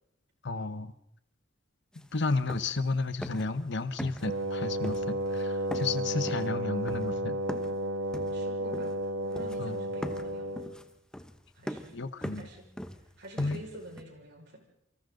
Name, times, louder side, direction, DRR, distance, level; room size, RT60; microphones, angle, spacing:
voice 1, 0.4-0.9 1.9-7.4 9.6-9.8 11.9-12.5 13.4-13.6, left 3 dB, 60° left, 11 dB, 1.2 m, -32 dB
sound 1, 1.9-2.0 2.3-2.9 3.2-3.6 4.0-4.5 4.8-5.4 5.7-7.8 8.1-9.1 9.4-9.7 10.0-14.0, equal, 5° left, 1.0 m, -41 dB
Wind instrument woodwind instrument, 4.2-10.8, right 1 dB, 80° right, 1.8 m, -32 dB
voice 2, 8.3-9.0 9.3-10.7 11.5-12.6 12.9-14.6, right 1 dB, 60° right, 1 dB, 5.8 m, -48 dB
28.0 x 24.5 x 4.0 m, 0.74 s
head